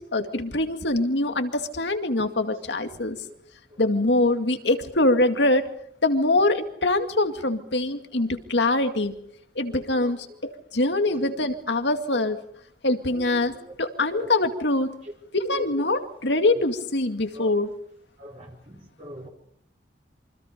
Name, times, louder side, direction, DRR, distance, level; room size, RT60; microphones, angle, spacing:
voice 1, 0.1-3.2 3.8-5.7 6.0-9.1 9.6-12.4 12.8-15.0 15.3-17.7, left 2 dB, 75° left, 7 dB, 2.3 m, -24 dB
voice 2, 9.7-10.1 11.1-11.3 13.1-13.2 14.1-14.3 15.5-15.6 17.3-17.5 18.2-19.3, left 1 dB, 40° right, -1 dB, 4.3 m, -41 dB
27.5 x 25.0 x 5.2 m, 0.66 s
head